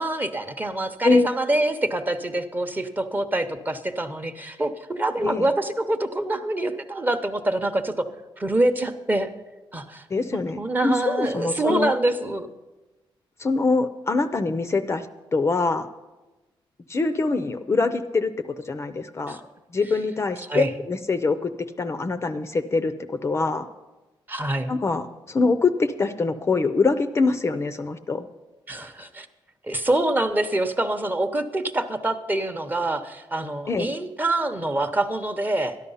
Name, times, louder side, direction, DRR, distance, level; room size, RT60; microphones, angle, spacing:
voice 1, 0.0-8.1 8.4-9.3 9.7-10.1 10.3-12.5 19.3-19.4 20.5-20.7 24.3-24.7 28.7-29.3 29.6-35.8, right 1 dB, 20° right, 8 dB, 0.8 m, -25 dB
voice 2, 10.1-11.9 13.4-15.1 15.3-15.9 16.9-18.3 18.7-19.4 19.7-21.5 21.8-23.7 24.7-28.3 33.7-33.9, left 3 dB, 30° left, 10 dB, 0.5 m, -24 dB
13.0 x 11.0 x 5.5 m, 1.1 s
wide cardioid pair, 135°, 9 cm